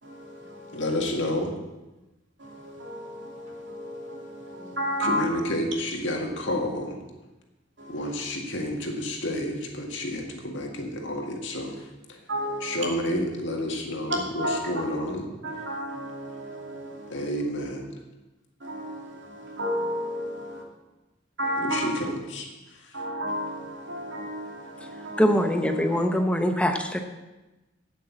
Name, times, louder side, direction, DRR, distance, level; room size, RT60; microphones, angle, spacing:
voice 1, 0.0-0.9 2.4-5.2 7.8-8.1 12.3-12.8 14.4-14.6 15.4-17.3 18.6-20.6 21.4-21.8 22.9-25.3 25.7-26.0, equal, 75° right, -1 dB, 2.7 m, -33 dB
voice 2, 0.7-1.6 5.0-7.0 7.9-11.8 12.6-15.3 17.1-17.9 21.6-22.5, left 1 dB, 75° left, 1 dB, 1.9 m, -30 dB
voice 3, 25.2-27.0, equal, 5° left, 5 dB, 0.8 m, -23 dB
8.9 x 8.3 x 7.3 m, 1.1 s
head